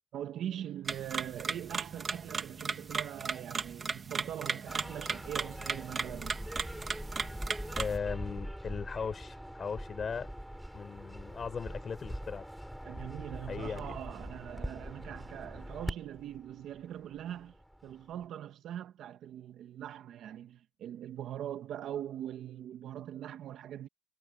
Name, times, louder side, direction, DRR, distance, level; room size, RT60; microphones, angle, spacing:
voice 1, 0.1-6.4 12.8-17.6 17.8-23.9, right 11 dB, 60° right, 1.7 m, -42 dB
sound 1, 0.9-8.0, right 5 dB, 30° right, 1.6 m, -37 dB
sound 2, 4.7-18.2, equal, ahead, 7.0 m, -43 dB
voice 2, 7.8-10.3 10.7-12.5 13.5-14.0, left 6 dB, 35° left, 4.8 m, -38 dB
cardioid pair, 120°, 0 cm